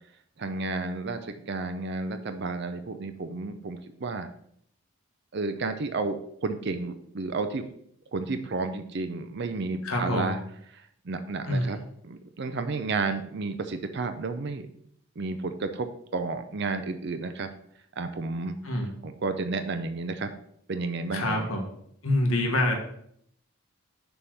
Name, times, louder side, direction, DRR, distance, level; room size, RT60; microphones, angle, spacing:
voice 1, 0.4-4.3 5.3-7.6 8.1-10.4 10.7-11.8 12.0-14.7 15.2-17.5 18.0-20.3 20.7-21.5, right 3 dB, 50° right, 9 dB, 0.5 m, -32 dB
voice 2, 9.8-10.3 11.5-11.7 18.6-18.9 21.1-21.7 22.0-22.8, left 1 dB, 75° left, 1 dB, 1.4 m, -26 dB
6.8 x 3.7 x 6.1 m, 0.69 s
head